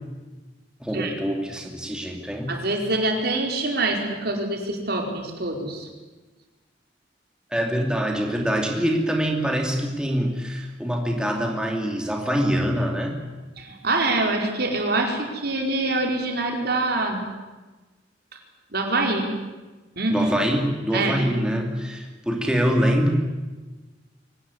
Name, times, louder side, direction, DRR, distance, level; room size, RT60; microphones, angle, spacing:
voice 1, 0.8-2.5 7.5-13.2 20.1-23.1, equal, 5° right, 1 dB, 2.7 m, -24 dB
voice 2, 2.5-5.9 13.6-17.2 18.7-19.3 20.0-20.4 20.9-21.2, right 2 dB, 60° right, 2 dB, 4.7 m, -25 dB
24.0 x 18.5 x 9.9 m, 1.2 s
head